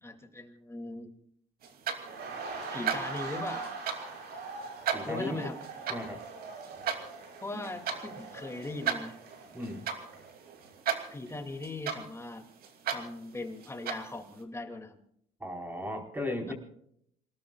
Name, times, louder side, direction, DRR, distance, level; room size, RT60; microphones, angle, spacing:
voice 1, 0.0-1.1 2.7-3.7 5.0-5.6 7.4-9.2 11.1-12.5 12.9-15.0 16.5-16.6, left 2 dB, 15° left, 5 dB, 2.6 m, -39 dB
sound 1, 1.6-14.4, right 8 dB, 65° right, 2.8 m, -38 dB
sound 2, 1.9-10.8 11.1-11.3, right 4 dB, 80° right, 6.2 m, -42 dB
voice 2, 4.9-5.5 5.9-6.2 9.5-9.9 15.4-16.5, left 1 dB, 10° right, 1 dB, 4.5 m, -36 dB
28.0 x 18.5 x 2.4 m, 0.68 s
cardioid pair, 110°, 17 cm